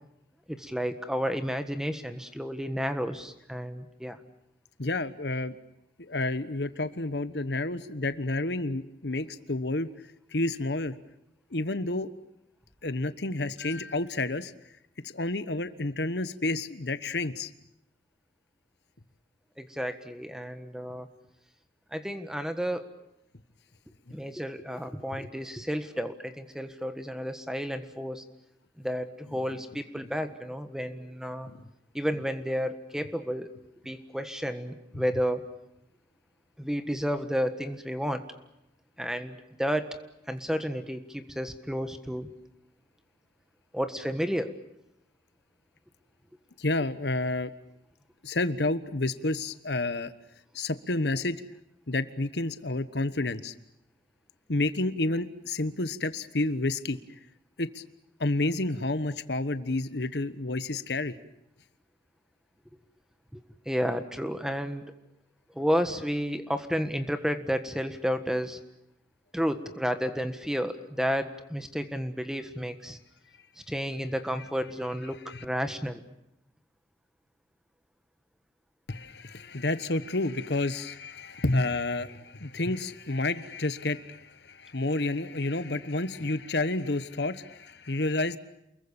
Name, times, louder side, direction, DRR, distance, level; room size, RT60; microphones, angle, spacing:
voice 1, 0.5-4.2 19.6-21.1 21.9-22.9 24.1-28.2 28.8-31.5 31.9-33.5 33.8-35.4 36.6-38.2 39.0-40.0 40.3-42.3 43.7-44.6 63.3-63.4 63.6-64.9 65.5-68.6 69.3-73.0 73.7-76.0, equal, 5° right, 9 dB, 1.5 m, -31 dB
voice 2, 4.8-5.6 6.0-9.9 10.3-10.9 11.5-12.1 12.8-14.5 15.0-17.5 24.1-24.2 31.4-31.6 46.6-47.5 48.2-50.1 50.5-51.4 51.9-53.5 54.5-57.0 57.6-57.8 58.2-61.2 75.3-75.5 78.9-88.4, left 2 dB, 70° left, 13 dB, 1.2 m, -30 dB
29.0 x 22.0 x 7.1 m, 0.84 s
head